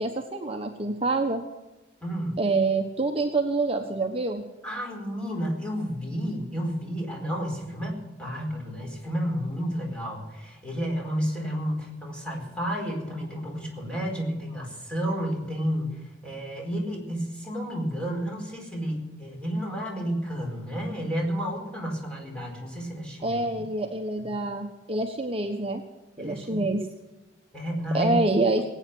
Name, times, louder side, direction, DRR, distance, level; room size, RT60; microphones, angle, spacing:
voice 1, 0.0-1.4 2.4-4.4 23.2-25.8 26.2-26.8 27.9-28.6, right 2 dB, 35° right, 3 dB, 1.1 m, -26 dB
voice 2, 2.0-2.4 4.6-23.4 24.2-24.3 26.2-26.6 27.5-28.1, equal, 5° left, 0 dB, 4.5 m, -31 dB
20.5 x 9.2 x 7.7 m, 1.1 s
head